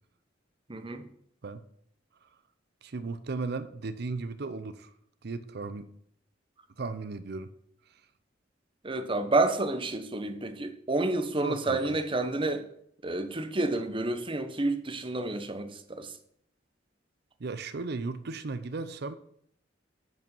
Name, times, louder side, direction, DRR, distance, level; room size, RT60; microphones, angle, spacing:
voice 1, 0.7-1.0 8.8-12.7 13.0-16.1, right 2 dB, 30° right, 0.8 m, -29 dB
voice 2, 2.8-4.9 5.2-5.9 6.8-7.5 11.4-11.8 17.4-19.1, right 3 dB, 60° right, 0.6 m, -35 dB
9.6 x 5.1 x 5.5 m
head